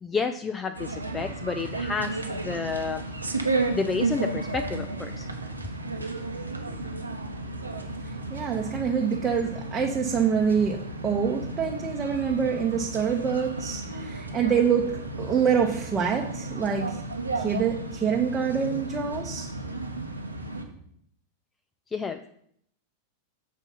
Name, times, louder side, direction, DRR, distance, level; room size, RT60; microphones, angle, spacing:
voice 1, 0.0-3.0 3.7-5.3 21.9-22.3, left 4 dB, 15° left, 9 dB, 0.4 m, -30 dB
sound 1, 0.7-20.6, right 2 dB, 85° right, 0.9 m, -33 dB
voice 2, 8.0-14.9 15.2-17.0 17.3-19.5, right 7 dB, 20° right, 0 dB, 0.8 m, -26 dB
7.1 x 4.1 x 5.6 m, 0.69 s
figure-of-eight pair, 90°, 0 cm